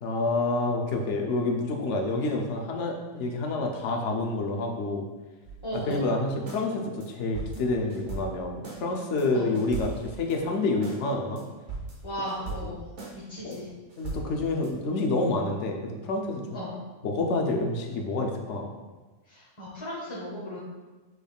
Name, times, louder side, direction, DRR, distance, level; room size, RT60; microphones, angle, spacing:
voice 1, 0.0-5.0 5.7-9.9 10.2-11.4 12.5-12.7 13.4-13.6 14.0-16.6 17.0-18.7, left 2 dB, 65° left, 1 dB, 0.9 m, -28 dB
sound 1, 5.4-6.0 6.5-6.6 7.0-7.1 7.3-8.8 9.2-9.3 9.5-11.0 11.4-11.5 11.7-13.1 13.5-13.6 13.9-14.7, right 3 dB, 60° right, 1.3 m, -39 dB
voice 2, 5.6-6.1 9.3-9.5 12.0-12.8 13.1-13.7 16.5-16.8 19.3-20.6, equal, 25° left, -8 dB, 0.8 m, -36 dB
6.2 x 3.5 x 2.3 m, 1.2 s
omnidirectional pair, 1.4 m